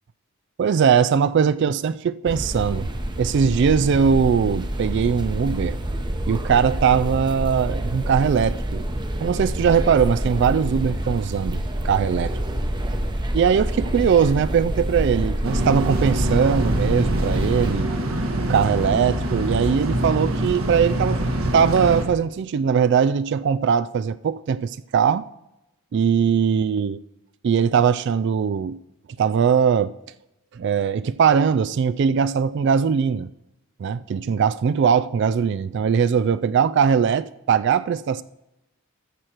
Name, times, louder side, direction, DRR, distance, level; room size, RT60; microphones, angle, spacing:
voice 1, 0.6-2.9 3.2-5.8 6.3-8.8 9.2-12.4 13.3-17.9 18.4-21.2 21.5-25.3 25.9-27.0 27.4-28.8 29.2-29.9 30.5-33.3 33.8-38.2, right 7 dB, 55° right, 0.3 m, -20 dB
sound 1, 2.3-17.7, right 1 dB, 20° right, 0.8 m, -27 dB
sound 2, 15.4-22.1, right 1 dB, 75° right, 1.5 m, -25 dB
13.5 x 6.3 x 4.4 m
head